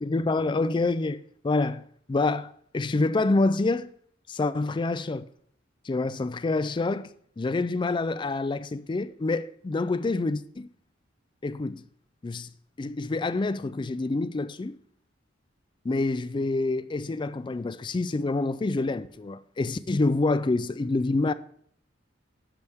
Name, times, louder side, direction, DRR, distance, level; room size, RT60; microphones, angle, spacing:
voice 1, 0.0-3.9 4.3-5.3 5.9-7.1 7.4-10.7 11.4-11.8 12.2-12.5 12.8-14.8 15.8-21.3, left 3 dB, 25° left, 0.3 m, -27 dB
10.5 x 6.9 x 3.5 m
head